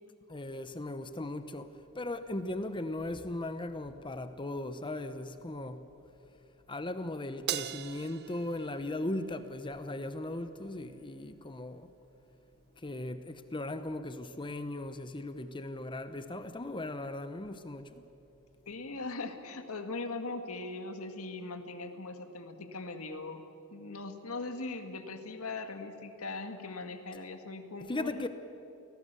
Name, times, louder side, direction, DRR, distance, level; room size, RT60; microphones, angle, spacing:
voice 1, 0.3-5.8 6.7-11.9 12.8-18.0 27.9-28.3, left 2 dB, 20° left, 0.8 m, -38 dB
Crash cymbal, 7.5-10.0, right 11 dB, 50° right, 0.6 m, -40 dB
voice 2, 18.7-23.4 23.7-28.3, left 3 dB, 75° left, 1.9 m, -40 dB
28.0 x 17.5 x 6.9 m
head